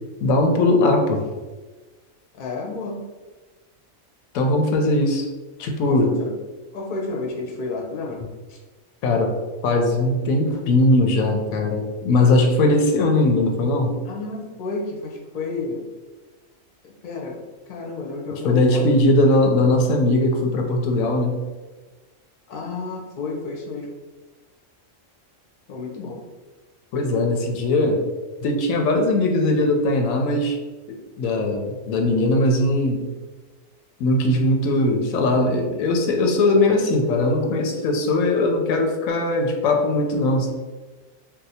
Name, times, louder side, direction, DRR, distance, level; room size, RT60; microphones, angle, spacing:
voice 1, 0.2-1.2 4.3-5.3 5.6-6.1 9.0-9.3 9.6-13.9 18.4-21.3 26.9-28.0 28.4-30.6 31.2-33.1 34.0-40.5, left 2 dB, 90° left, 3 dB, 1.0 m, -19 dB
voice 2, 2.3-3.0 5.8-6.3 6.7-8.2 8.5-8.6 14.0-15.8 16.8-17.4 17.7-18.8 22.5-23.9 25.7-26.2, left 3 dB, 50° left, -1 dB, 0.6 m, -31 dB
2.7 x 2.2 x 4.0 m, 1.2 s
omnidirectional pair, 1.4 m